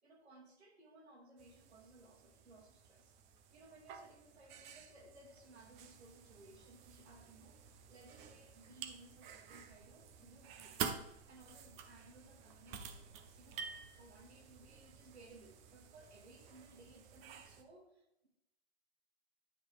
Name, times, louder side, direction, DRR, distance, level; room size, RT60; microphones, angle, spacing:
voice 1, 0.0-3.1 3.5-10.8 11.3-13.7 14.0-18.3, right 2 dB, 80° right, 1 dB, 2.6 m, -61 dB
sound 1, 1.4-17.6, right 7 dB, 20° right, 0.5 m, -50 dB
10.0 x 5.9 x 3.4 m, 0.85 s
hypercardioid pair, 125°, 32 cm